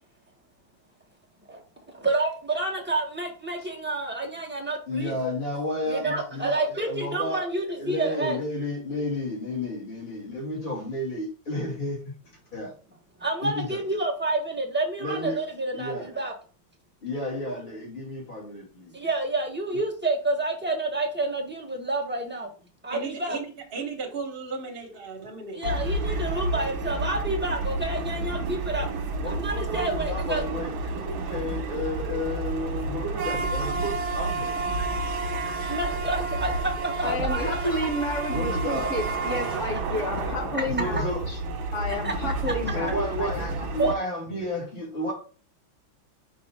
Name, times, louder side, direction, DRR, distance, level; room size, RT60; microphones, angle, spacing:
voice 1, 1.9-5.1 5.9-8.4 13.2-16.3 18.9-22.5 22.8-23.4 25.5-28.9 29.3-30.6 35.7-37.5 39.3-39.5 42.0-42.1 42.7-42.8 43.8-44.0, right 2 dB, 5° right, -2 dB, 1.1 m, -29 dB
voice 2, 4.9-7.4 7.7-12.0 12.5-12.7 13.4-13.8 15.0-15.4 15.7-16.1 17.0-18.9 19.7-19.8 29.2-34.5 38.3-38.9 40.8-41.2 42.7-43.4 43.7-45.1, left 1 dB, 25° left, -5 dB, 2.6 m, -32 dB
voice 3, 22.9-23.5 23.7-25.6, right 4 dB, 30° right, 1 dB, 1.5 m, -35 dB
sound 1, 25.6-43.9, right 2 dB, 75° right, 1.8 m, -30 dB
voice 4, 37.0-41.4 41.7-43.7 44.3-44.4, left 1 dB, 45° left, 1 dB, 1.2 m, -31 dB
5.5 x 5.4 x 3.6 m, 0.39 s
omnidirectional pair, 2.2 m